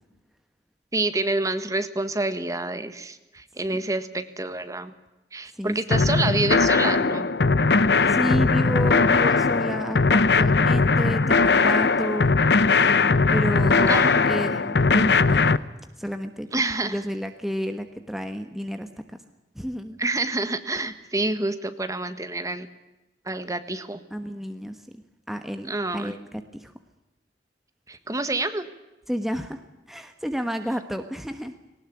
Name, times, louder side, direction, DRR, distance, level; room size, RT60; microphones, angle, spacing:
voice 1, 0.9-4.9 5.3-7.3 13.9-14.3 16.5-16.9 20.0-22.7 23.2-24.0 25.7-26.1 27.9-28.7, right 2 dB, 20° right, 10 dB, 1.5 m, -27 dB
sound 1, 5.9-15.6, left 4 dB, 70° left, 0.9 m, -19 dB
voice 2, 8.1-12.3 13.3-15.4 16.0-16.5 16.8-18.9 19.5-20.0 24.1-25.0 25.3-26.7 29.1-29.6 29.9-31.5, equal, ahead, 7 dB, 1.3 m, -31 dB
19.5 x 19.0 x 9.9 m, 0.99 s
head